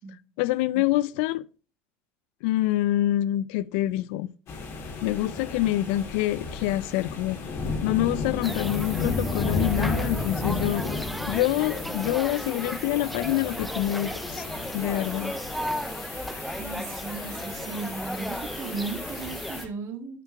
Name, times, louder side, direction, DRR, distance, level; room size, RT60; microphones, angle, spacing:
voice 1, 0.4-1.4 2.4-4.3 5.0-7.4 7.8-14.5 14.7-15.3, left 15 dB, 80° left, 0.4 m, -26 dB
sound 1, 4.5-19.7, left 3 dB, 50° left, 2.6 m, -33 dB
sound 2, 8.4-19.6, equal, ahead, 0.4 m, -35 dB
voice 2, 16.6-20.2, right 4 dB, 50° right, 1.6 m, -36 dB
8.9 x 4.4 x 4.5 m
supercardioid pair, 105°, 6 cm